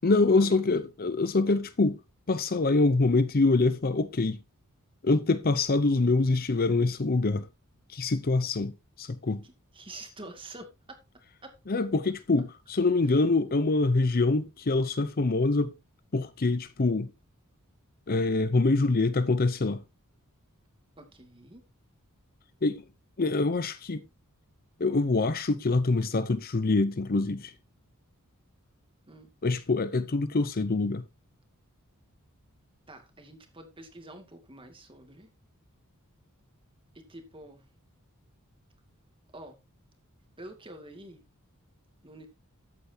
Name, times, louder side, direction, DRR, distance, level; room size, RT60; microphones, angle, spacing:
voice 1, 0.0-2.0 2.3-4.4 5.0-7.5 7.9-9.4 11.7-15.7 16.1-17.1 18.1-19.8 22.6-22.8 23.2-24.0 24.8-27.5 29.4-31.0, left 3 dB, 45° left, 0.7 m, -25 dB
voice 2, 9.4-11.0 11.4-11.8 13.0-13.2 21.0-21.6 29.1-29.3 32.9-35.3 36.9-37.6 39.3-39.6 40.4-41.3 42.0-42.3, right 2 dB, 25° right, 2.2 m, -47 dB
13.5 x 8.3 x 2.8 m
head